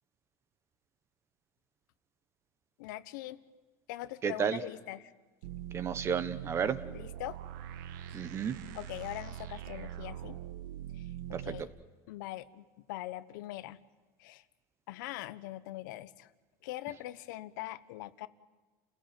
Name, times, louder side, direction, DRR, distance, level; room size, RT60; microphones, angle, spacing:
voice 1, 2.8-3.4 3.9-5.1 6.9-7.4 8.7-10.4 10.9-11.1 11.4-11.7 12.1-13.8 14.2-14.4 14.9-16.3 16.6-18.3, left 15 dB, 85° left, 14 dB, 1.1 m, -42 dB
voice 2, 4.2-4.6 5.7-6.8 8.1-8.6 11.3-11.6, right 7 dB, 25° right, 14 dB, 1.2 m, -32 dB
sound 1, 5.4-11.6, right 11 dB, 85° right, 1.3 m, -43 dB
30.0 x 16.5 x 9.1 m, 1.3 s
cardioid pair, 155°, 10 cm